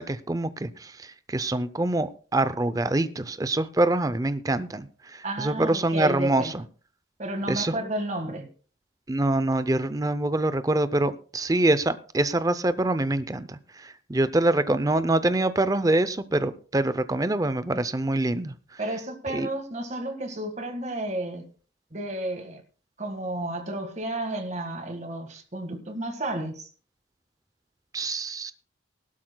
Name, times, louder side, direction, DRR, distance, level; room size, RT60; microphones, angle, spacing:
voice 1, 0.0-6.6 7.5-7.7 9.1-18.8 19.3-19.5 27.9-28.5, right 2 dB, 20° right, 0.5 m, -25 dB
voice 2, 5.2-6.5 7.2-8.5 18.8-21.4 21.9-22.6 23.0-26.7, right 1 dB, 35° right, 1.7 m, -32 dB
19.0 x 12.5 x 2.2 m
head